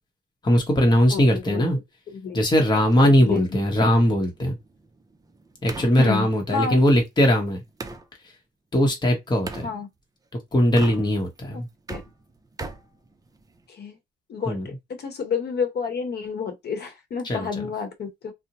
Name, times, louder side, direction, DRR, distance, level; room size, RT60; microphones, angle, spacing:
voice 1, 0.4-1.8 2.3-4.6 5.6-7.6 8.7-9.7 10.5-11.7 14.5-14.7 17.2-17.6, equal, 20° left, 0.9 m, -20 dB
voice 2, 1.1-1.6 2.1-2.4 3.0-3.9 6.0-6.8 9.6-9.9 11.5-11.6 11.9-12.0 13.7-14.0 14.3-14.7 15.0-18.3, left 5 dB, 55° left, 0.9 m, -30 dB
sound 1, 2.8-8.1 9.5-9.7 10.6-11.4 11.7-13.7, right 3 dB, 20° right, 0.5 m, -40 dB
2.5 x 2.1 x 2.9 m
cardioid pair, 90°, 20 cm